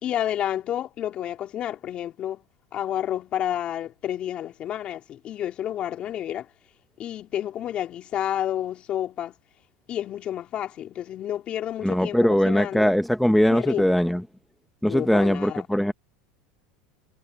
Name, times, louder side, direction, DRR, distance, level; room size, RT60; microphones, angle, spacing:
voice 1, 0.0-2.4 2.7-6.5 7.0-9.3 9.9-12.9 13.4-14.0 14.8-15.6, left 11 dB, 35° left, 2.9 m, -30 dB
voice 2, 11.8-14.2 14.8-15.9, equal, ahead, 0.6 m, -21 dB
supercardioid pair, 130°, 3 cm